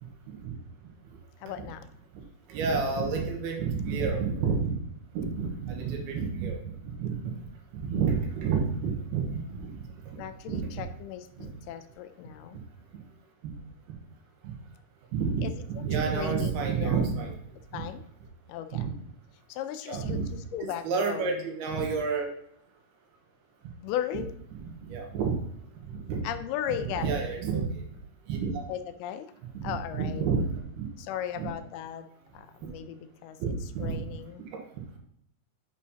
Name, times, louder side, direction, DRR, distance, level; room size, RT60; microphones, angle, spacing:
voice 1, 1.4-1.9 10.2-12.6 15.4-15.6 15.9-17.0 17.7-18.0 18.5-18.9 19.5-21.5 23.8-24.3 26.2-27.2 28.7-29.3 29.6-30.3 31.0-32.1 32.3-34.5, left 10 dB, 85° left, 9 dB, 2.5 m, -37 dB
voice 2, 2.5-4.7 5.1-6.7 7.0-7.2 7.7-9.7 10.5-10.7 11.4-11.5 14.4-14.5 15.1-17.3 17.7-17.8 18.7-18.8 19.8-20.3 20.8-22.3 24.9-25.4 25.9-26.2 26.8-27.8 28.3-28.6 29.5-30.4 30.8-30.9 31.4-31.5 33.4-34.0, right 5 dB, 80° right, 2 dB, 3.1 m, -29 dB
9.3 x 5.5 x 2.8 m, 0.71 s
omnidirectional pair, 4.5 m